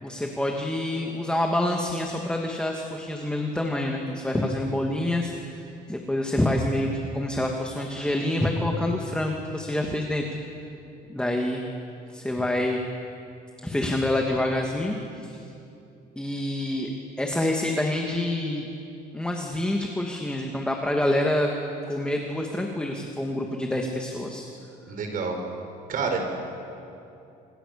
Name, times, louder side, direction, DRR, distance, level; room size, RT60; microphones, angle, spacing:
voice 1, 0.0-10.3 11.1-11.6 12.1-12.8 13.6-15.4 16.2-16.9 17.2-18.7 19.1-21.5 21.9-24.5, left 1 dB, 5° left, 1 dB, 2.5 m, -27 dB
voice 2, 24.9-25.4 25.9-26.2, right 5 dB, 55° right, 4 dB, 5.9 m, -28 dB
27.0 x 27.0 x 7.1 m, 2.8 s
cardioid pair, 110°, 17 cm